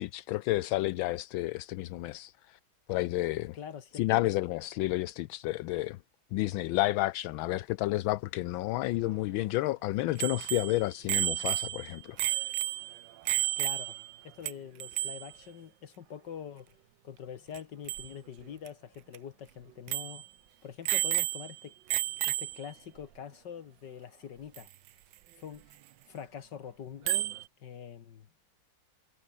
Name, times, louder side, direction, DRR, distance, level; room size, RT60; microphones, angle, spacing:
voice 1, 0.0-2.6 2.9-3.6 3.9-6.0 6.3-12.2, left 17 dB, 80° left, 1.4 m, -31 dB
voice 2, 3.5-4.2 13.6-14.0 14.2-16.8 17.0-20.3 20.6-21.7 22.2-24.7 25.4-25.6 26.1-28.3, left 8 dB, 60° left, 1.8 m, -44 dB
Bicycle bell, 10.2-14.2 14.5-14.6 14.8-15.3 17.5-17.6 17.9-18.1 18.7-18.8 19.1-19.2 19.9-20.2 20.8-21.6 21.9-22.7 24.6-24.7 27.1-27.4, right 15 dB, 70° right, 1.3 m, -31 dB
omnidirectional pair, 2.2 m